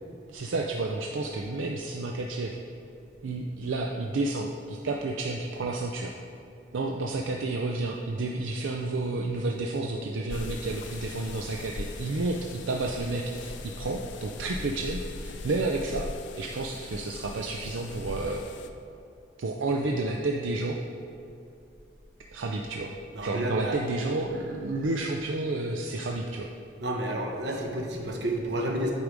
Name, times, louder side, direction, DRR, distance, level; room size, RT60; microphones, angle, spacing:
voice 1, 0.3-2.6 3.2-6.1 6.7-16.1 16.3-18.4 19.4-20.8 22.3-22.9 23.2-26.5, right 2 dB, 85° right, 1 dB, 0.5 m, -31 dB
sound 1, 10.3-18.7, left 3 dB, 70° left, 0.5 m, -40 dB
voice 2, 23.1-23.8 26.8-28.9, right 1 dB, 65° right, 0 dB, 1.1 m, -30 dB
8.4 x 5.2 x 4.7 m, 2.7 s
head